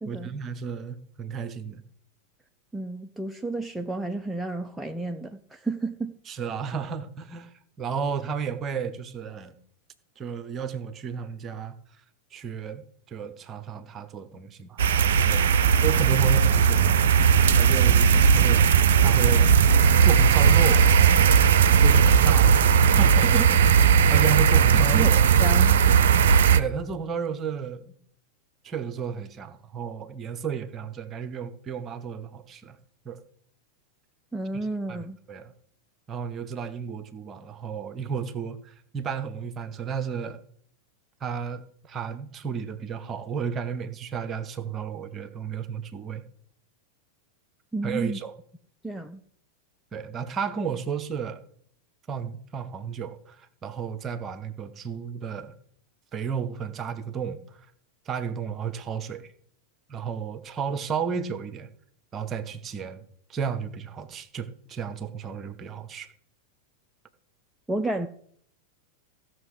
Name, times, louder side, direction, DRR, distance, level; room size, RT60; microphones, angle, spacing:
voice 1, 0.1-1.8 6.3-9.5 10.2-11.7 12.3-18.7 19.0-19.6 20.0-21.3 21.8-23.5 24.1-25.2 26.5-27.9 28.6-32.8 33.0-33.2 34.5-35.5 36.1-40.4 41.2-46.2 47.8-48.3 49.9-51.4 52.1-55.5 56.1-57.6 58.1-59.3 59.9-61.7 62.1-63.0 63.3-66.1, right 6 dB, 25° right, 0.9 m, -33 dB
voice 2, 2.7-6.2 24.7-25.8 34.3-35.2 47.7-48.2 48.8-49.2 67.7-68.1, right 2 dB, 5° right, 0.6 m, -31 dB
sound 1, 14.8-26.6, right 7 dB, 60° right, 0.6 m, -18 dB
15.5 x 6.3 x 4.9 m
figure-of-eight pair, 90°, 0 cm